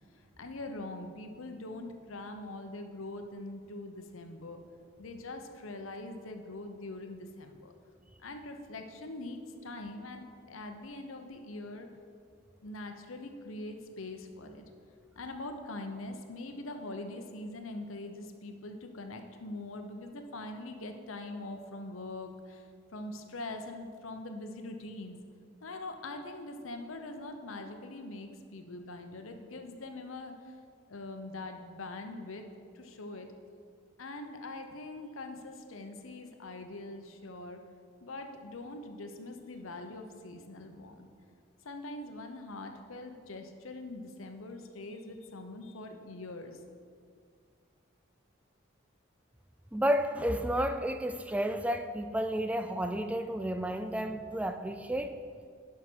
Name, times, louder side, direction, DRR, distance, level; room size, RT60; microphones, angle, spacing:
voice 1, 0.1-4.6 5.0-7.7 8.2-11.9 12.6-14.6 15.1-25.2 25.6-30.6 30.9-33.3 34.0-37.6 38.0-41.1 41.6-46.6, left 2 dB, 85° left, 6 dB, 0.9 m, -43 dB
voice 2, 49.7-55.2, equal, 5° right, 8 dB, 0.3 m, -31 dB
11.0 x 5.8 x 4.6 m, 2.2 s
head